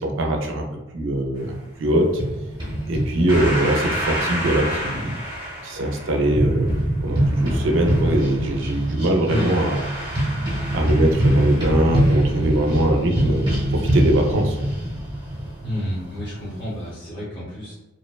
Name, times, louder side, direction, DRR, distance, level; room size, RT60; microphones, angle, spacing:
voice 1, 0.0-0.6 0.9-2.1 2.9-5.1 5.6-6.7 7.0-9.8 10.7-13.4 13.7-14.5, right 1 dB, 65° right, 2 dB, 0.4 m, -21 dB
sound 1, 2.0-16.9, right 1 dB, 20° right, 0.8 m, -24 dB
voice 2, 9.3-9.6 15.6-17.7, equal, 45° left, -9 dB, 0.9 m, -29 dB
2.7 x 2.1 x 2.2 m, 1.1 s
head